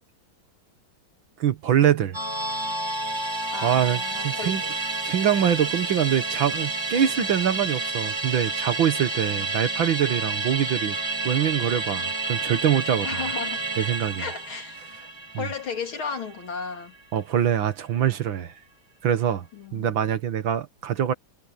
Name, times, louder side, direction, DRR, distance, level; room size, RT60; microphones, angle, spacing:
voice 1, 1.4-2.2 3.6-4.6 5.1-11.0 11.2-13.2 13.8-14.3 15.3-15.5 17.1-18.5 19.0-19.5 19.7-21.1, right 9 dB, 75° right, 2.1 m, -24 dB
Musical instrument, 2.1-16.8 17.1-17.2, right 3 dB, 15° right, 1.7 m, -30 dB
voice 2, 3.5-4.7 13.0-13.6 14.2-14.8 15.4-16.9 19.5-19.9, left 5 dB, 80° left, 3.8 m, -34 dB
omnidirectional pair, 2.2 m